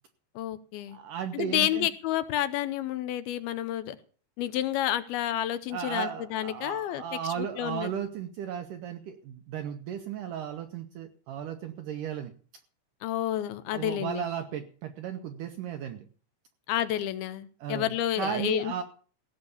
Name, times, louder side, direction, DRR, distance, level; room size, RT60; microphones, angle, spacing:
voice 1, 0.4-1.0 1.3-4.0 4.4-7.9 13.0-14.2 16.7-18.8, left 12 dB, 80° left, 12 dB, 2.5 m, -30 dB
voice 2, 0.9-1.9 5.7-12.3 13.7-16.0 17.6-17.9 18.2-18.8, right 8 dB, 75° right, 7 dB, 1.9 m, -35 dB
17.0 x 6.6 x 7.0 m, 0.42 s
omnidirectional pair, 4.6 m